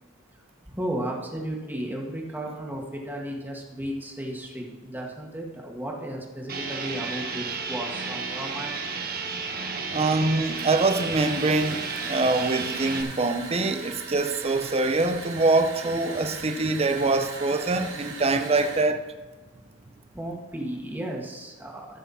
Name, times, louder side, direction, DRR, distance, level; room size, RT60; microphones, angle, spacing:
voice 1, 0.6-8.8 20.1-22.0, right 1 dB, 10° right, 1.9 m, -34 dB
sound 1, 6.5-13.0, right 4 dB, 50° right, 1.3 m, -32 dB
voice 2, 9.9-19.0, right 3 dB, 30° right, 0.8 m, -24 dB
sound 2, 10.5-18.9, right 4 dB, 80° right, 3.7 m, -40 dB
14.0 x 6.9 x 4.2 m
head